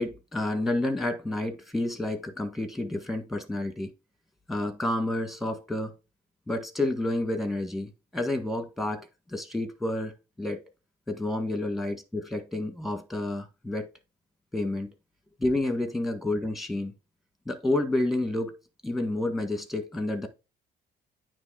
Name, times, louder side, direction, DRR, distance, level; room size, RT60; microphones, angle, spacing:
voice 1, 0.0-3.9 4.5-5.9 6.5-10.6 11.1-13.9 14.5-14.9 15.4-16.9 17.5-18.6 18.8-20.3, left 1 dB, ahead, 1.6 m, -30 dB
9.5 x 3.2 x 4.8 m
cardioid pair, 110°, 17 cm